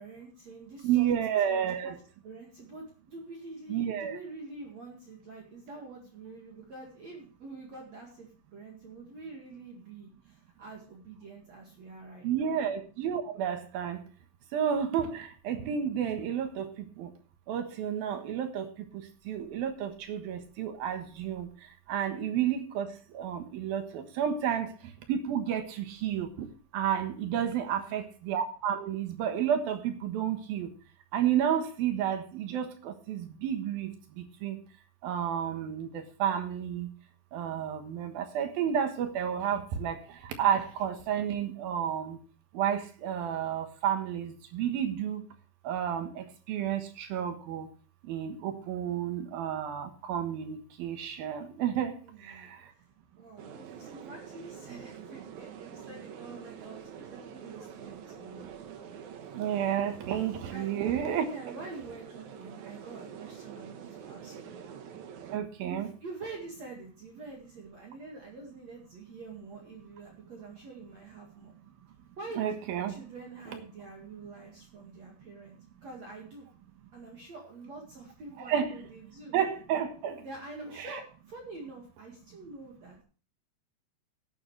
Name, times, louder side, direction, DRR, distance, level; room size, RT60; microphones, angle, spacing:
voice 1, 0.0-1.1 1.4-1.9 2.2-12.6 27.6-28.1 52.0-52.5 53.1-58.5 60.5-60.8 61.2-64.6 65.6-71.5 72.2-76.5 76.9-79.3 80.2-83.0, right 3 dB, 45° right, 0 dB, 2.5 m, -46 dB
voice 2, 0.8-2.0 3.7-4.2 12.2-14.0 14.5-17.1 17.5-21.5 21.9-24.7 25.1-26.5 26.7-30.7 31.1-33.9 34.2-34.6 35.0-36.9 37.3-42.2 42.5-45.2 45.6-47.7 48.1-51.9 52.2-52.6 59.3-61.3 65.3-65.9 72.4-72.9 78.5-78.7 79.3-80.2 80.8-81.0, right 9 dB, 65° right, 6 dB, 2.7 m, -31 dB
sound 1, 53.4-65.4, right 8 dB, 85° right, 1.7 m, -46 dB
16.5 x 9.5 x 3.2 m, 0.39 s
omnidirectional pair, 5.3 m